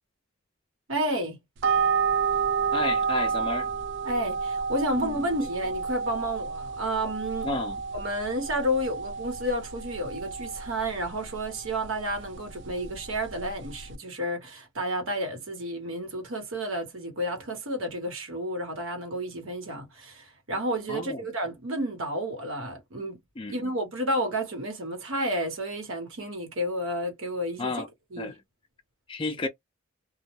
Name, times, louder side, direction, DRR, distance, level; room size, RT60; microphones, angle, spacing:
voice 1, 0.9-1.4 4.0-7.5 7.9-23.2 23.5-27.8 28.1-28.3, right 1 dB, 75° right, 1.0 m, -31 dB
sound 1, 1.6-14.0, right 5 dB, 55° right, 0.4 m, -30 dB
voice 2, 2.7-3.7 4.9-5.1 7.4-7.8 20.9-21.2 23.4-23.5 27.6-27.9 28.2-28.3 29.1-29.5, left 3 dB, 25° left, 0.4 m, -31 dB
2.2 x 2.1 x 3.0 m
head